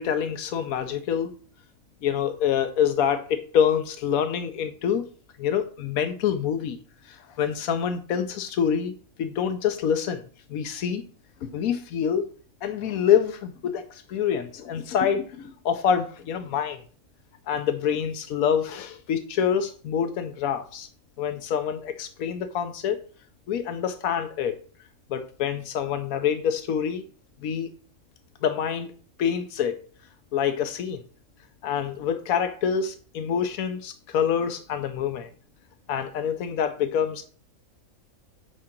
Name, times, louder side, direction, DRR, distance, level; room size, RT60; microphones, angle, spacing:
voice 1, 0.0-1.3 2.0-5.1 5.4-6.8 7.1-10.2 10.5-11.0 11.4-12.3 12.6-16.8 17.5-20.9 21.2-23.0 23.5-24.6 25.1-27.0 27.4-27.7 28.4-28.9 29.2-29.8 30.3-31.0 31.6-35.3 35.9-37.3, left 8 dB, 90° left, 8 dB, 1.2 m, -26 dB
9.8 x 3.8 x 5.8 m, 0.42 s
omnidirectional pair, 1.4 m